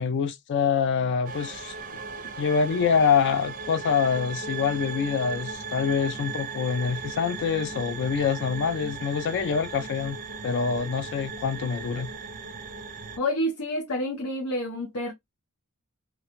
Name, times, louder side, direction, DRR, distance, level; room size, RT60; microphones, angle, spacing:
voice 1, 0.0-1.7 2.4-10.2 10.4-12.1, left 6 dB, 55° left, 0.3 m, -25 dB
sound 1, 1.2-13.2, right 4 dB, 40° right, 0.4 m, -37 dB
voice 2, 13.2-15.1, left 1 dB, 85° left, 0.8 m, -29 dB
2.6 x 2.2 x 2.9 m
head